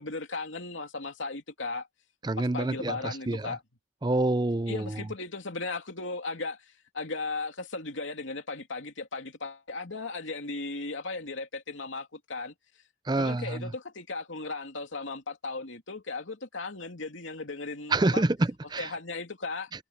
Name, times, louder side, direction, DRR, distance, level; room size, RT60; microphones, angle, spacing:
voice 1, 0.0-1.9 2.4-3.6 4.7-12.5 13.2-18.2 18.8-19.7, left 3 dB, 85° left, 2.9 m, -36 dB
voice 2, 2.2-3.5 4.0-4.9 13.1-13.7 17.9-18.9, right 2 dB, 20° right, 0.5 m, -27 dB
head